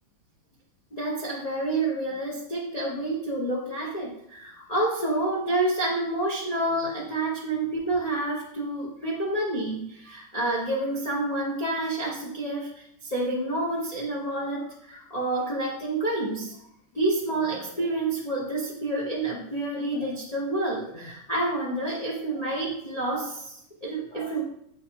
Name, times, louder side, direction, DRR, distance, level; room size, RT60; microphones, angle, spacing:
voice 1, 0.9-16.6 16.9-24.4, right 2 dB, 55° left, -5 dB, 0.4 m, -29 dB
8.2 x 4.0 x 2.8 m, 0.75 s
omnidirectional pair, 2.2 m